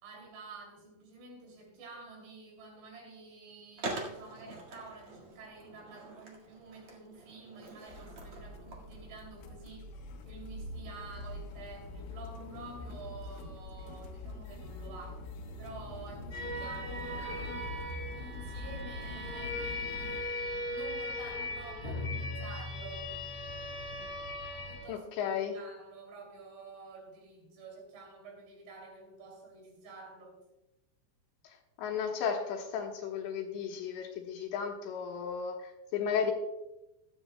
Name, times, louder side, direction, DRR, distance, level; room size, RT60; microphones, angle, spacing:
voice 1, 0.0-9.9 10.2-15.2 15.6-17.7 18.1-23.1 24.7-30.4, right 3 dB, 70° right, 0 dB, 5.1 m, -49 dB
Skateboard, 3.8-9.3, right 2 dB, 50° right, 1.7 m, -44 dB
sound 1, 7.9-20.2, left 2 dB, 90° left, 3.7 m, -44 dB
sound 2, 16.3-24.8, left 1 dB, 40° left, 1.4 m, -38 dB
voice 2, 24.9-25.5 31.4-36.3, left 7 dB, 75° left, 2 dB, 3.2 m, -34 dB
15.5 x 12.5 x 2.2 m, 0.96 s
omnidirectional pair, 5.5 m